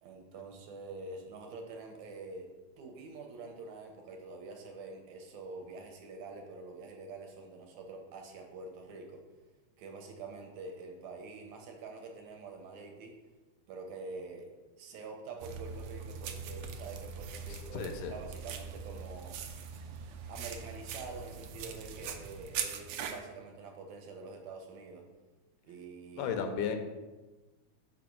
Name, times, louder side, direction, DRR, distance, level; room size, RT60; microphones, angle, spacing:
voice 1, 0.0-2.5 2.8-9.2 9.8-13.1 13.7-14.5 14.8-19.4 20.3-25.0 25.6-26.3, right 3 dB, 75° right, 2 dB, 2.0 m, -46 dB
sound 1, 15.4-23.2, right 6 dB, 90° right, 1.4 m, -41 dB
voice 2, 17.7-18.1 26.2-26.8, left 7 dB, 80° left, 6 dB, 2.1 m, -33 dB
5.1 x 4.1 x 5.9 m, 1.2 s
omnidirectional pair, 3.6 m